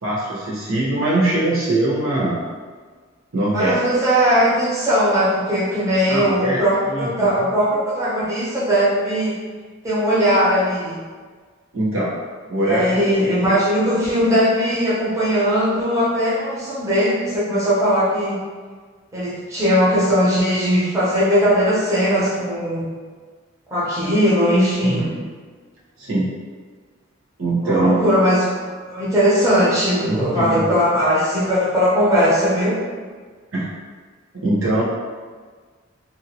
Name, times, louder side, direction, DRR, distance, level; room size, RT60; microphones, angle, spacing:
voice 1, 0.0-2.4 3.3-3.8 6.1-7.3 11.7-12.1 12.5-13.3 24.8-25.1 26.0-26.3 27.4-28.0 30.0-30.7 33.5-33.7 34.3-34.8, right 2 dB, 85° right, -8 dB, 1.0 m, -22 dB
voice 2, 3.5-9.4 9.8-11.0 12.6-18.4 19.1-22.9 23.7-25.1 27.6-32.8, equal, 15° right, -9 dB, 0.9 m, -19 dB
2.8 x 2.5 x 2.8 m, 1.5 s
head